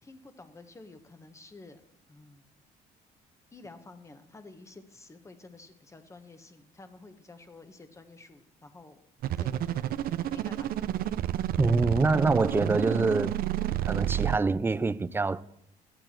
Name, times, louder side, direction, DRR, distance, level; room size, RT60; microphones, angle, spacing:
voice 1, 0.0-1.8 2.1-2.4 3.5-9.0 9.4-11.0, left 3 dB, 15° left, 1.3 m, -51 dB
sound 1, 9.2-14.4, right 11 dB, 60° right, 0.5 m, -30 dB
voice 2, 11.6-13.3 13.8-15.4, right 3 dB, 15° right, 0.4 m, -25 dB
13.5 x 11.0 x 4.5 m
cardioid pair, 110°, 17 cm